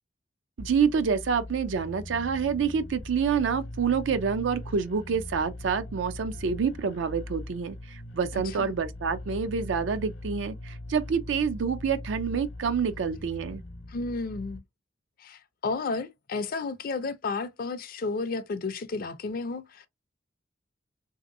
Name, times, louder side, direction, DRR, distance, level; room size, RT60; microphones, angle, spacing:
sound 1, 0.6-14.6, left 1 dB, 70° left, 0.8 m, -40 dB
voice 1, 0.6-13.6, right 6 dB, 80° right, 0.4 m, -27 dB
voice 2, 8.3-8.7 13.9-14.6 15.2-19.9, left 3 dB, 50° left, 0.4 m, -32 dB
3.2 x 2.7 x 2.6 m
head